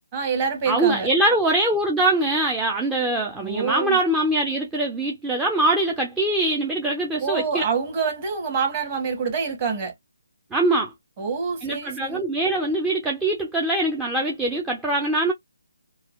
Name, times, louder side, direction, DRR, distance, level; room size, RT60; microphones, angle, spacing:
voice 1, 0.1-1.1 3.4-4.0 7.2-9.9 11.2-12.2, right 5 dB, 25° right, 1.5 m, -26 dB
voice 2, 0.7-7.6 10.5-10.9 11.6-15.3, right 2 dB, 5° right, 0.4 m, -23 dB
3.9 x 2.2 x 2.2 m
figure-of-eight pair, 155°, 0 cm